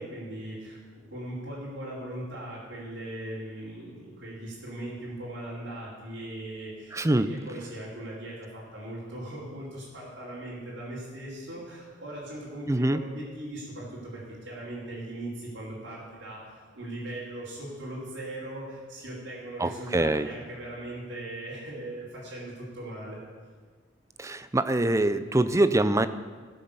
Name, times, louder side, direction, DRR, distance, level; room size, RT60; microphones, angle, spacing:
voice 1, 0.0-23.2, right 1 dB, 70° right, -10 dB, 4.1 m, -39 dB
voice 2, 6.9-7.3 12.7-13.0 19.6-20.3 24.2-26.1, right 2 dB, 15° right, 12 dB, 0.5 m, -24 dB
17.0 x 7.6 x 7.1 m, 1.5 s
head